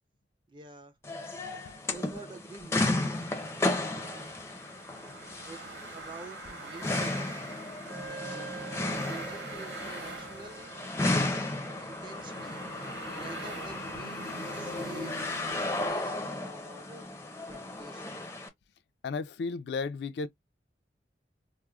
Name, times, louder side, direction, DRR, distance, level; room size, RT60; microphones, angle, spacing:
voice 1, 0.5-1.0 1.9-3.1 3.7-4.3 5.5-5.6 5.9-7.4 7.9-8.6 8.8-10.7 11.5-12.6 13.1-15.2 15.5-18.1, right 3 dB, 30° right, 0.6 m, -48 dB
sound 1, 1.0-18.5, left 2 dB, 15° left, 0.5 m, -34 dB
sound 2, 2.9-15.9, right 3 dB, 85° right, 1.5 m, -45 dB
Wind instrument woodwind instrument, 7.9-15.2, right 5 dB, 55° right, 0.9 m, -48 dB
voice 2, 19.0-20.3, left 4 dB, 65° left, 0.3 m, -34 dB
4.7 x 2.0 x 2.2 m
head